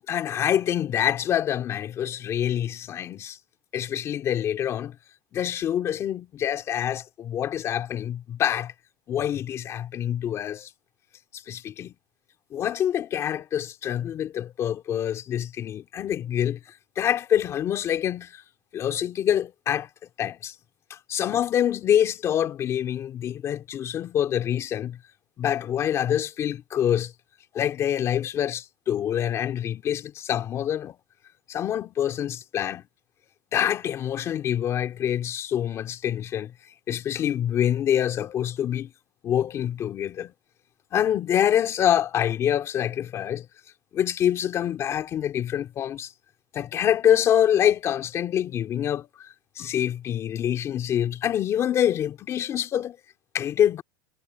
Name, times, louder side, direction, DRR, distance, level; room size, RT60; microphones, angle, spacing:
voice 1, 0.0-3.4 3.7-5.0 5.3-8.7 9.1-10.7 11.3-11.9 12.5-16.6 17.0-18.4 18.7-20.5 20.9-25.0 25.4-27.1 27.5-31.0 31.5-32.8 33.5-36.5 36.9-38.9 39.2-40.3 40.9-43.5 43.9-46.1 46.5-53.0 53.3-53.8, left 10 dB, 20° left, 2.7 m, -26 dB
supercardioid pair, 175°, 13 cm